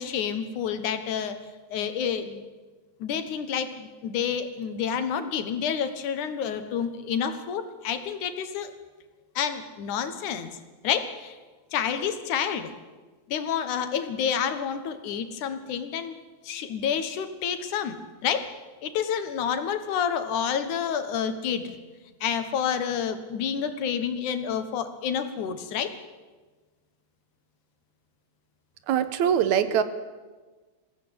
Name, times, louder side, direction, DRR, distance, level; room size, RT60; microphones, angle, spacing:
voice 1, 0.0-1.4 1.7-2.4 3.0-8.7 9.4-10.5 10.8-11.4 11.7-12.7 13.3-16.1 16.4-18.5 18.8-21.8 22.2-25.9, left 8 dB, 80° left, 9 dB, 2.9 m, -29 dB
voice 2, 28.9-29.8, right 9 dB, 75° right, 12 dB, 2.3 m, -22 dB
21.5 x 15.5 x 8.9 m, 1.3 s
omnidirectional pair, 3.4 m